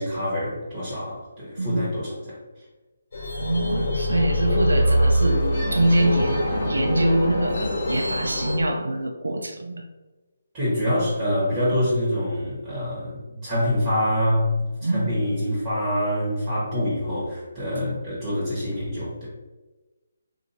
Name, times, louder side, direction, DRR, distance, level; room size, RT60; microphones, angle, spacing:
voice 1, 0.0-2.4 10.5-19.3, left 1 dB, 20° right, -9 dB, 1.3 m, -25 dB
sound 1, 3.1-8.6, equal, 55° left, 1.3 m, -23 dB
voice 2, 3.4-5.4 5.7-9.8 11.7-11.8 14.8-15.1 17.8-18.0, right 1 dB, 85° right, 3 dB, 0.4 m, -24 dB
2.7 x 2.5 x 4.2 m, 1.2 s
figure-of-eight pair, 155°, 0 cm